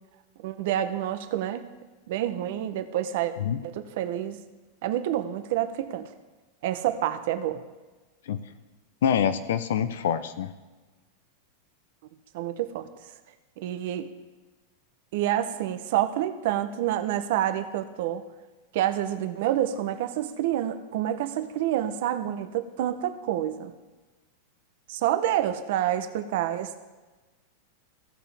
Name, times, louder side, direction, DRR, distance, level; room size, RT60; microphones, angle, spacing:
voice 1, 0.4-1.6 2.1-3.3 3.6-4.4 4.8-6.1 6.6-7.6 12.3-12.9 13.6-14.1 15.1-18.2 18.7-23.7 24.9-26.7, right 12 dB, 50° right, 10 dB, 0.7 m, -28 dB
voice 2, 9.0-10.5, left 8 dB, 80° left, 12 dB, 0.6 m, -25 dB
16.0 x 7.0 x 3.4 m, 1.2 s
supercardioid pair, 180°, 0 cm